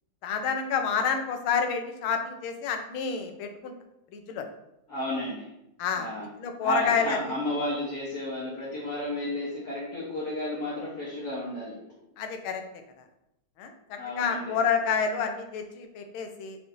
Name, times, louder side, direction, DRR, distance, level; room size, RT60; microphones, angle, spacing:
voice 1, 0.2-3.7 4.1-4.4 5.8-6.1 6.4-7.2 12.2-12.6 13.6-16.6, left 6 dB, 90° left, 5 dB, 1.5 m, -29 dB
voice 2, 4.9-5.5 6.0-6.3 6.6-11.7 14.0-14.5, left 1 dB, 55° left, -7 dB, 1.4 m, -32 dB
5.1 x 3.4 x 2.5 m, 0.86 s
omnidirectional pair, 2.2 m